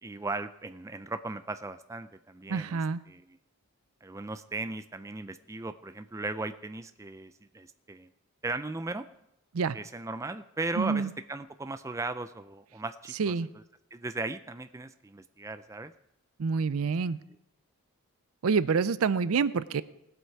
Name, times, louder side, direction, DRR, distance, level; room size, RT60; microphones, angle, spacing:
voice 1, 0.0-2.8 3.1-3.4 4.0-8.1 8.4-9.1 9.7-13.3 13.9-15.9 16.8-16.9, right 2 dB, 15° right, 10 dB, 0.4 m, -37 dB
voice 2, 2.5-3.0 9.5-9.8 10.8-11.1 13.2-13.5 16.4-17.2 18.4-19.8, right 5 dB, 85° right, 17 dB, 0.5 m, -27 dB
19.0 x 8.0 x 4.6 m, 0.83 s
head